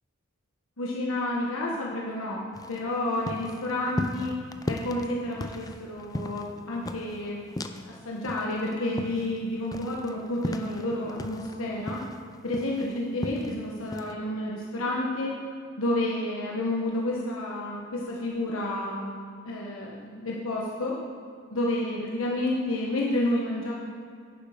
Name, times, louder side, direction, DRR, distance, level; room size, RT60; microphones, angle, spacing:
voice 1, 0.8-4.4 4.7-7.5 7.8-12.0 12.4-15.4 15.8-19.2 19.4-21.0 21.5-23.7, left 1 dB, 70° left, -3 dB, 1.3 m, -30 dB
sound 1, 2.5-8.0 8.2-11.6 11.9-13.6 13.9-14.1, left 1 dB, 15° left, 0.4 m, -36 dB
11.0 x 10.5 x 5.1 m, 2.3 s
head